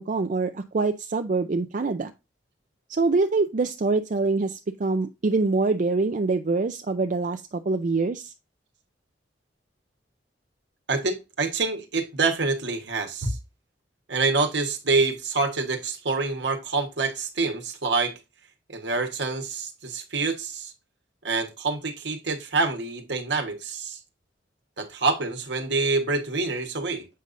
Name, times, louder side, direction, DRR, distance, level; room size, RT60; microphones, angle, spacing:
voice 1, 0.0-2.1 2.9-8.3, right 3 dB, 45° right, 0.4 m, -25 dB
voice 2, 10.9-13.4 14.1-18.2 18.7-20.7 21.2-24.0 24.8-27.1, right 3 dB, 65° right, 1.3 m, -26 dB
7.6 x 5.4 x 2.5 m
head